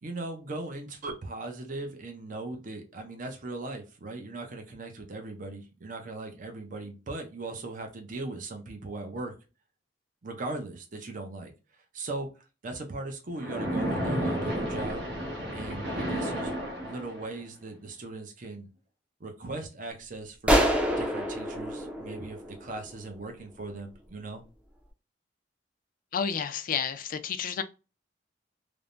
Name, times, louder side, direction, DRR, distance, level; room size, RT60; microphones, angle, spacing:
voice 1, 0.0-9.3 10.2-11.5 11.9-12.3 12.6-15.0 15.5-18.7 19.2-20.6 20.9-24.4, right 2 dB, 50° right, 0.7 m, -39 dB
Splash splatter, 13.4-17.4, equal, 70° right, 1.0 m, -31 dB
sound 1, 20.5-23.1, equal, 10° right, 0.5 m, -27 dB
voice 2, 26.1-27.6, left 7 dB, 50° left, 0.4 m, -30 dB
3.3 x 2.1 x 2.5 m
head